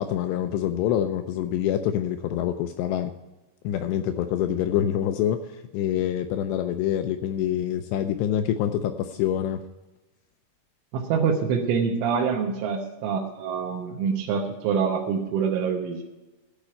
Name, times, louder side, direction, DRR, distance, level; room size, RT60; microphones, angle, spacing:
voice 1, 0.0-3.1 3.6-9.6, left 10 dB, 85° left, 8 dB, 2.4 m, -26 dB
voice 2, 10.9-16.0, right 6 dB, 85° right, -1 dB, 3.5 m, -25 dB
13.5 x 5.0 x 8.6 m, 1.1 s
omnidirectional pair, 5.5 m